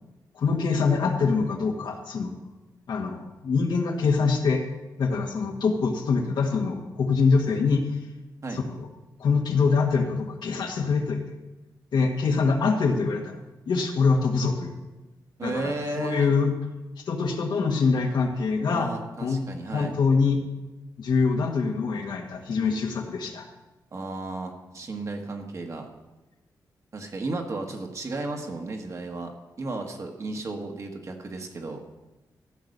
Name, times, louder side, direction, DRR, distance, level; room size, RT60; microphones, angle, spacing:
voice 1, 0.3-2.3 2.9-4.6 5.0-7.8 8.5-8.9 9.2-11.2 11.9-13.3 13.7-14.8 15.4-16.5 17.0-18.9 19.2-19.4 19.7-20.4 21.0-23.4, left 4 dB, 70° left, 2 dB, 1.7 m, -24 dB
voice 2, 15.4-16.3 18.7-19.9 23.9-25.9 26.9-31.8, right 2 dB, 40° right, 3 dB, 1.5 m, -34 dB
14.0 x 6.0 x 6.6 m, 1.1 s
wide cardioid pair, 125°, 8 cm